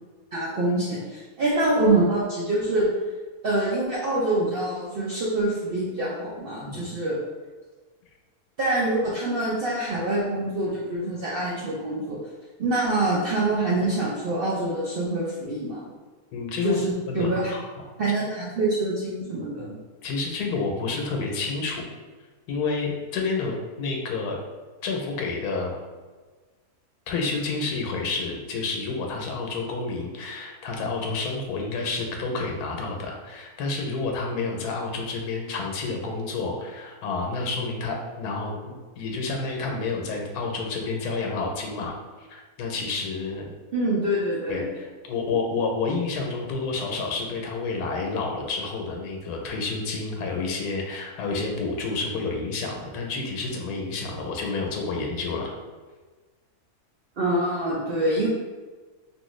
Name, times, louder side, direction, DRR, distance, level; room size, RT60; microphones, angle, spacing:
voice 1, 0.3-2.9 3.4-7.2 8.6-12.2 12.6-15.8 16.6-17.5 18.0-19.7 43.7-44.7 57.2-58.3, right 2 dB, 75° right, -6 dB, 0.5 m, -25 dB
voice 2, 16.3-16.8 17.1-17.6 20.0-21.8 22.5-24.4 24.8-25.7 27.1-43.5 44.5-55.5, left 3 dB, 85° left, 1 dB, 1.1 m, -29 dB
2.9 x 2.5 x 3.0 m, 1.4 s
omnidirectional pair, 1.6 m